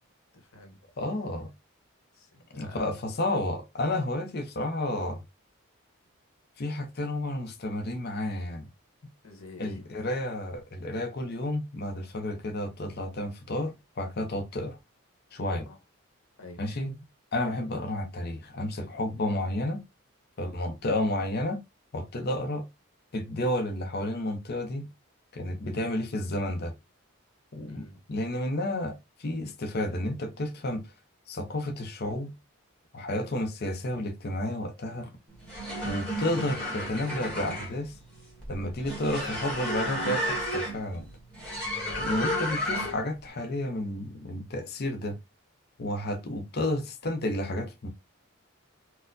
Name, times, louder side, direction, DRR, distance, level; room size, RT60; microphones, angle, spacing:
voice 1, 0.3-0.8 2.1-2.8 9.2-10.0 15.5-15.8 16.4-16.6 27.7-28.0, left 2 dB, 75° left, 1.0 m, -49 dB
voice 2, 1.0-1.5 2.5-5.2 6.6-8.7 9.6-14.8 15.3-15.7 16.6-16.9 17.3-19.8 20.4-21.6 21.9-22.6 23.1-24.9 25.3-26.7 27.5-30.8 31.3-32.3 32.9-35.1 35.8-37.9 38.5-41.0 42.0-45.2 45.8-47.9, left 1 dB, 50° left, 0.6 m, -31 dB
sound 1, 35.3-43.1, equal, 5° left, 1.4 m, -32 dB
4.1 x 2.1 x 2.6 m
head